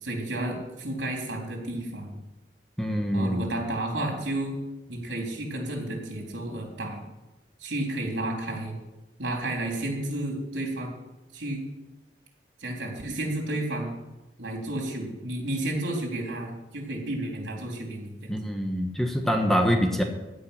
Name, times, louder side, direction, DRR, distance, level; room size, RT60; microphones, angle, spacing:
voice 1, 0.0-2.2 3.1-4.5 4.9-7.0 7.6-8.8 9.2-10.9 11.3-11.6 12.6-13.9 14.4-18.4, right 1 dB, 80° right, 0 dB, 3.7 m, -32 dB
voice 2, 2.8-3.4 18.3-20.0, equal, ahead, 3 dB, 1.2 m, -25 dB
16.0 x 5.5 x 9.9 m, 1.0 s
head